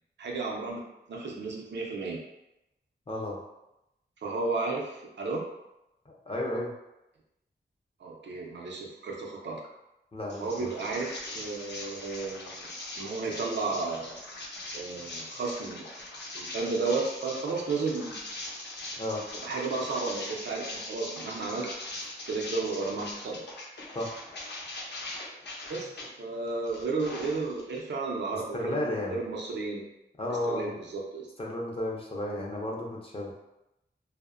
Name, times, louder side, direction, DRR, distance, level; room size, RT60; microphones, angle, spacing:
voice 1, 0.2-0.8 1.1-2.2 4.2-5.4 8.0-9.6 10.4-12.7 13.0-14.2 14.7-15.9 16.3-18.2 19.4-21.7 22.3-23.5 25.7-29.8 30.4-31.3, right 3 dB, 85° right, -1 dB, 0.5 m, -33 dB
voice 2, 3.1-3.4 6.1-6.7 10.1-10.7 19.0-19.2 23.9-24.1 28.3-29.2 30.2-30.7 31.4-33.3, left 1 dB, 30° left, -2 dB, 0.5 m, -33 dB
sound 1, 10.3-26.1 26.5-27.8, left 2 dB, 75° left, 0.6 m, -41 dB
2.7 x 2.0 x 2.4 m, 0.90 s
wide cardioid pair, 120°, 18 cm